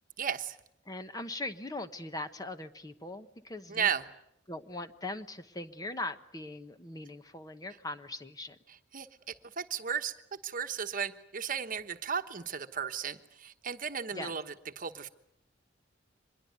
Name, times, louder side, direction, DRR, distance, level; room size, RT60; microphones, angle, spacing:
voice 1, 0.2-0.5 3.7-4.0 8.9-9.1 9.6-10.1 10.4-14.4 14.8-15.1, right 7 dB, 45° right, 8 dB, 1.1 m, -34 dB
voice 2, 0.9-3.9 4.5-8.6 14.1-14.4, left 2 dB, 20° left, 9 dB, 1.1 m, -40 dB
25.0 x 21.0 x 9.4 m, 0.80 s
head